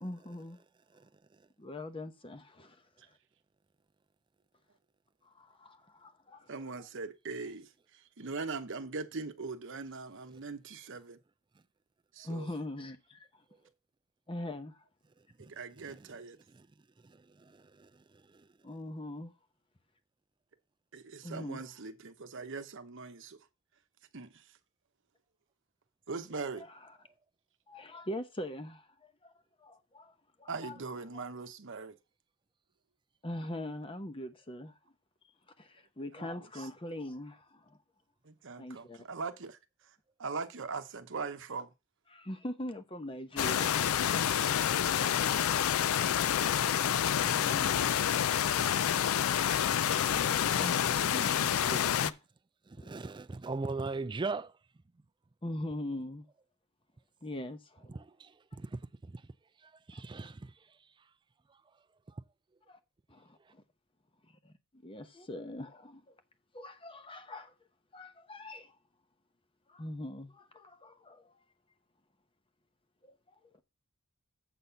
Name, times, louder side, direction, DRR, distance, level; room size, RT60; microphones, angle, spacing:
voice 1, 0.0-0.6 1.6-2.8 5.3-6.5 12.2-13.4 14.3-14.8 18.6-19.3 21.2-21.6 26.6-26.7 27.7-29.3 29.6-30.8 31.1-31.3 33.2-34.8 35.6-37.8 38.6-39.0 42.1-43.7 47.2-47.8 49.8-52.2 52.8-52.9 55.4-56.3 57.2-58.0 59.9-60.0 62.7-62.8 63.1-63.6 64.4-66.2 66.5-67.5 67.9-68.7 69.7-71.3 73.0-73.2, left 1 dB, 25° left, 0.8 m, -42 dB
voice 2, 6.5-11.2 12.1-12.5 15.4-16.4 20.9-23.5 24.1-24.6 26.1-26.7 30.5-32.0 36.2-36.3 36.5-36.7 38.2-41.7, right 4 dB, 55° right, 0.9 m, -41 dB
voice 3, 17.0-18.5 49.2-49.7 51.5-51.6 52.7-54.5 57.9-59.2 59.6-60.5 62.1-62.2, right 3 dB, 20° right, 0.4 m, -40 dB
sound 1, 43.4-52.1, left 9 dB, 70° left, 0.4 m, -28 dB
7.7 x 4.1 x 6.9 m
head